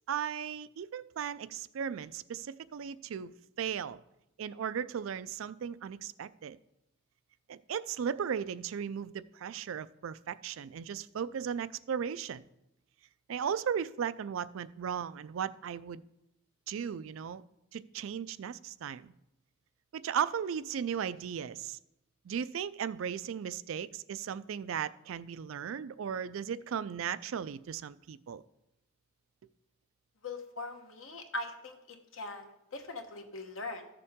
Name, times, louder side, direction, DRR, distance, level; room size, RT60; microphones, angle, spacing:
voice 1, 0.1-4.0 4.4-6.6 7.5-12.4 13.3-16.0 16.7-17.4 17.7-19.1 19.9-21.8 22.3-28.4, right 8 dB, 70° right, 0.4 m, -36 dB
voice 2, 30.2-33.9, left 2 dB, 70° left, 1.2 m, -41 dB
13.5 x 6.8 x 3.6 m
head